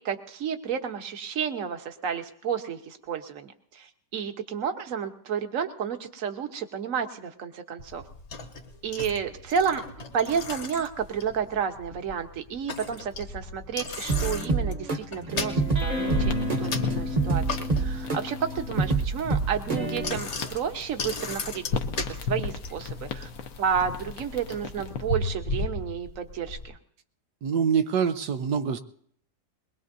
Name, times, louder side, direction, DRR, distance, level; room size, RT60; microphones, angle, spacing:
voice 1, 0.0-8.0 8.8-9.8 10.1-21.6 21.9-23.3 23.6-26.8, right 7 dB, 55° right, 7 dB, 1.5 m, -31 dB
Bicycle, 7.8-26.6, left 2 dB, 45° left, 1.4 m, -37 dB
sound 1, 14.1-20.2, right 3 dB, 30° right, 1.0 m, -27 dB
sound 2, 15.5-25.2, left 5 dB, 65° left, 1.4 m, -36 dB
voice 2, 27.4-28.8, right 7 dB, 85° right, 8 dB, 1.4 m, -25 dB
22.0 x 21.0 x 2.7 m, 0.63 s
omnidirectional pair, 1.7 m